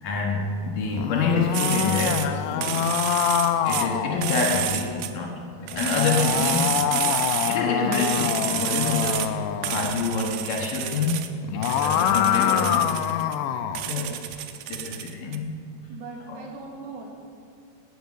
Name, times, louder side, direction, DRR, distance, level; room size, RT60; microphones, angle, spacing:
voice 1, 0.0-2.9 3.6-7.1 7.5-9.4 9.7-11.2 11.5-13.0 13.9-14.2 14.7-15.5 16.3-16.4, left 4 dB, 65° left, 0 dB, 2.5 m, -27 dB
sound 1, 0.8-4.7 5.7-9.9 11.3-13.8, left 10 dB, 90° left, 2.7 m, -25 dB
sound 2, 1.5-2.3 2.6-3.9 4.2-5.1 5.7-7.6 7.9-9.3 9.6-11.3 11.6-13.4 13.7-15.4, right 12 dB, 85° right, 2.7 m, -30 dB
voice 2, 15.9-17.1, right 4 dB, 65° right, 0 dB, 3.5 m, -40 dB
18.5 x 9.5 x 6.4 m, 2.4 s
omnidirectional pair, 4.8 m